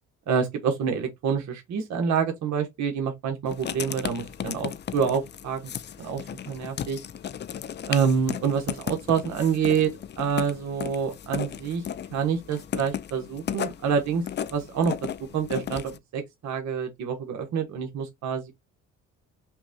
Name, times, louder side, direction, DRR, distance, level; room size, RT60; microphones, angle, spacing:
voice 1, 0.3-5.6 6.0-7.0 7.9-9.9 10.2-11.8 12.1-14.2 14.5-14.9 15.3-18.5, right 7 dB, 65° right, 1.0 m, -27 dB
Writing, 3.5-16.0, left 9 dB, 35° left, 0.4 m, -35 dB
5.7 x 2.1 x 2.7 m
cardioid pair, 90°, 30 cm